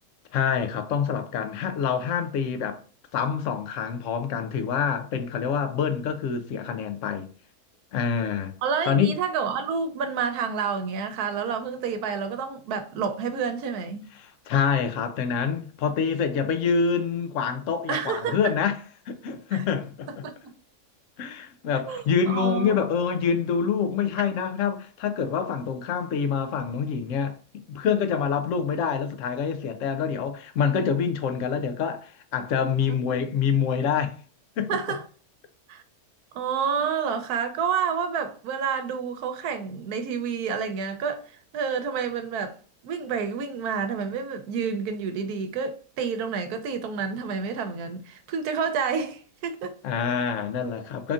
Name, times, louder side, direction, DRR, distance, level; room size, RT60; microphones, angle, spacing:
voice 1, 0.3-2.8 3.1-7.3 7.9-8.5 8.8-9.1 14.2-18.8 19.1-20.3 21.2-27.4 27.7-34.2 34.6-34.7 49.8-51.1, left 6 dB, 65° left, 0.9 m, -26 dB
voice 2, 8.6-14.1 17.9-18.5 19.5-19.6 20.2-20.5 21.9-22.8 33.1-33.2 34.7-35.0 35.7-35.8 36.3-42.6 42.8-49.8, right 6 dB, 80° right, 1.2 m, -29 dB
3.7 x 3.5 x 2.4 m
omnidirectional pair, 1.6 m